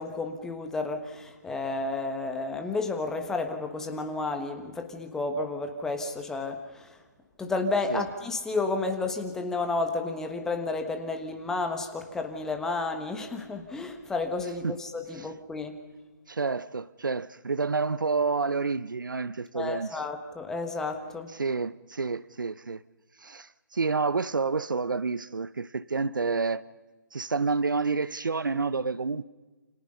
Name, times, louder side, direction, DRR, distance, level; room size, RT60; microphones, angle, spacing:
voice 1, 0.0-6.9 7.4-15.8 19.5-21.3, left 3 dB, 5° left, 1.3 m, -31 dB
voice 2, 16.3-20.0 21.3-22.8 23.2-26.6 27.1-29.2, right 4 dB, 75° right, 0.8 m, -29 dB
28.5 x 26.5 x 5.6 m
figure-of-eight pair, 150°, 11 cm